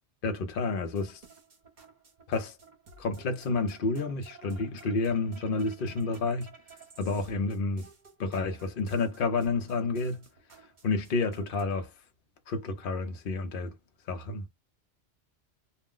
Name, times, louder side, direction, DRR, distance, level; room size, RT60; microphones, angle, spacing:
voice 1, 0.2-1.2 2.3-2.6 3.0-6.5 7.0-7.9 8.2-10.2 10.8-11.9 12.5-13.7 14.1-14.5, left 3 dB, 55° left, 0.8 m, -30 dB
sound 1, 0.8-11.6, right 4 dB, 45° right, 0.9 m, -55 dB
2.5 x 2.1 x 3.6 m
omnidirectional pair, 1.2 m